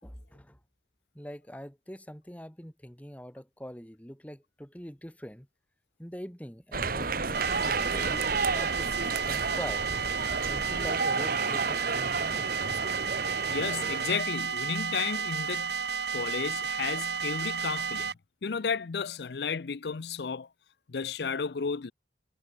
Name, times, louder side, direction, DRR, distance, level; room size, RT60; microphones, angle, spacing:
voice 1, 0.0-0.6 1.1-5.5 6.0-9.8 10.4-12.5, equal, 10° left, 4.3 m, -43 dB
sound 1, 6.7-14.2, right 4 dB, 55° right, 1.9 m, -31 dB
sound 2, 7.3-18.1, right 6 dB, 70° right, 2.1 m, -32 dB
voice 2, 13.5-15.8 16.1-18.1 18.4-20.5 20.9-21.9, left 5 dB, 65° left, 0.6 m, -33 dB
head